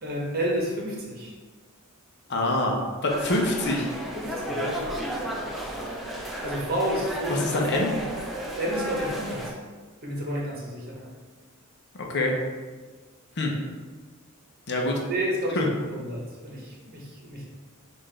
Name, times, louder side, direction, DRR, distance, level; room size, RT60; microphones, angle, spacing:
voice 1, 0.0-1.3 4.1-4.8 6.4-7.4 8.6-9.6 10.0-11.1 15.1-15.6 15.9-17.5, equal, 45° right, -3 dB, 1.1 m, -30 dB
voice 2, 2.3-3.9 7.3-7.9 12.1-12.3 13.4-13.5 14.7-15.0 15.6-15.7, left 1 dB, 55° left, 0 dB, 0.7 m, -25 dB
sound 1, 3.1-9.5, equal, ahead, 0.5 m, -33 dB
5.6 x 2.6 x 3.3 m, 1.4 s
head